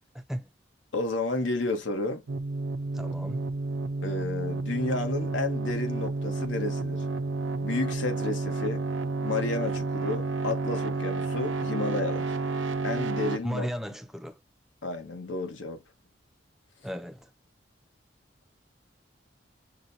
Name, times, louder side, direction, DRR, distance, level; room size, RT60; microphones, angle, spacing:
voice 1, 0.1-0.5 2.9-3.4 13.4-14.4 16.8-17.3, equal, ahead, 0.4 m, -35 dB
voice 2, 0.9-2.2 4.0-7.0 7.6-8.8 9.2-12.3 12.8-13.7 14.8-15.8, left 2 dB, 90° left, 1.1 m, -31 dB
sound 1, 2.3-13.4, right 3 dB, 85° right, 0.5 m, -31 dB
6.0 x 2.2 x 2.6 m
head